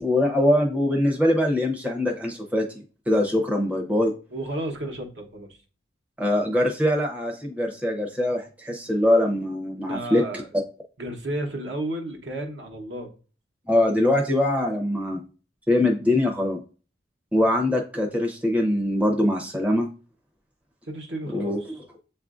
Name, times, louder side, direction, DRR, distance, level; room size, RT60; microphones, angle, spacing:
voice 1, 0.0-2.6 3.1-4.1 6.2-10.2 13.7-15.2 15.7-16.6 17.3-19.9 21.3-21.8, left 1 dB, 5° right, 0.6 m, -22 dB
voice 2, 4.3-5.6 9.9-10.5 11.0-13.1 20.8-21.8, right 1 dB, 60° right, 0.9 m, -32 dB
7.3 x 2.5 x 2.4 m
head